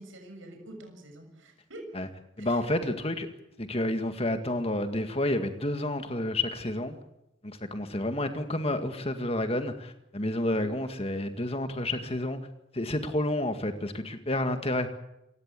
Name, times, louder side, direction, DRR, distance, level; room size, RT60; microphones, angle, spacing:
voice 1, 0.0-1.9 2.4-2.6 10.5-10.7, right 1 dB, 65° right, 4 dB, 6.5 m, -46 dB
voice 2, 2.4-3.3 3.6-7.0 7.4-12.5 12.7-14.9, left 1 dB, 30° left, 7 dB, 2.0 m, -30 dB
28.0 x 16.5 x 8.4 m, 0.87 s
head